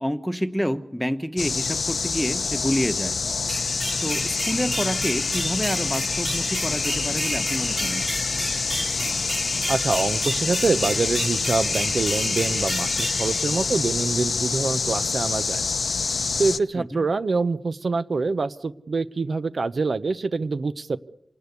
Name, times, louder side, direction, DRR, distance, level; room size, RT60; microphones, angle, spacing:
voice 1, 0.0-3.2 3.6-8.0 16.7-17.0, equal, ahead, 10 dB, 1.2 m, -28 dB
sound 1, 1.4-16.6, left 5 dB, 85° left, 0.8 m, -26 dB
sound 2, 3.5-14.2, right 1 dB, 30° right, 2.8 m, -32 dB
voice 2, 9.7-15.6 16.4-21.0, right 3 dB, 65° right, 13 dB, 0.8 m, -25 dB
26.5 x 19.0 x 8.2 m, 0.83 s
wide cardioid pair, 85°, 0 cm